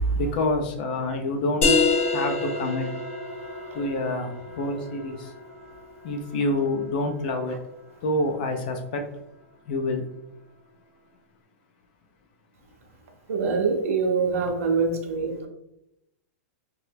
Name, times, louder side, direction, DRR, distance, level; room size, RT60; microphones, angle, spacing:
voice 1, 0.1-1.8 2.1-2.9 3.7-5.3 6.0-7.6 8.0-9.1 9.7-10.1, left 2 dB, 35° left, 0.3 m, -27 dB
sound 1, 1.6-7.0, left 4 dB, 65° left, 0.8 m, -28 dB
voice 2, 3.7-4.1 13.3-15.5, right 4 dB, 65° right, 0.6 m, -25 dB
2.8 x 2.2 x 3.2 m
supercardioid pair, 175°, 8 cm